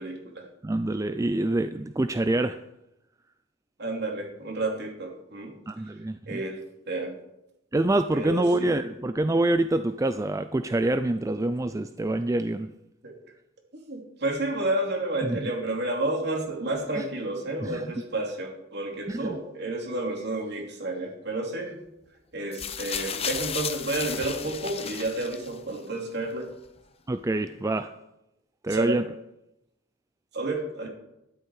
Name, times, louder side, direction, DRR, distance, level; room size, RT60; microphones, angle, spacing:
voice 1, 0.0-0.5 3.8-5.5 6.3-6.6 6.9-7.2 8.1-8.7 13.0-13.1 13.9-21.8 22.3-26.5 28.7-29.0 30.3-30.9, right 2 dB, 55° right, 1 dB, 2.8 m, -31 dB
voice 2, 0.6-2.6 5.7-6.4 7.7-12.7 15.3-15.5 17.0-17.1 17.6-17.9 19.1-19.4 27.1-27.9 28.6-29.0, right 2 dB, 15° right, 10 dB, 0.3 m, -26 dB
sound 1, 22.5-25.8 26.7-26.8, left 7 dB, 30° left, 0.8 m, -34 dB
12.5 x 11.0 x 4.8 m, 0.88 s
head